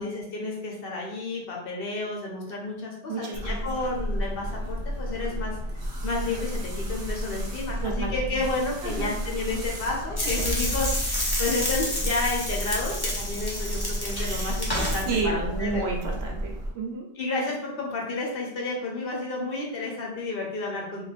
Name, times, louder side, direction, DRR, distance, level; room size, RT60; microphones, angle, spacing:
voice 1, 0.0-5.5 6.0-15.9 17.1-21.1, left 3 dB, 65° left, -1 dB, 1.0 m, -31 dB
voice 2, 3.1-3.7 7.8-8.4 8.8-9.1 14.2-17.0, right 3 dB, 80° right, 1 dB, 1.0 m, -32 dB
sound 1, 3.3-16.7, equal, 60° right, 0.9 m, -32 dB
sound 2, 10.2-15.1, left 1 dB, 25° left, 0.8 m, -30 dB
2.7 x 2.4 x 4.1 m, 0.78 s
omnidirectional pair, 1.1 m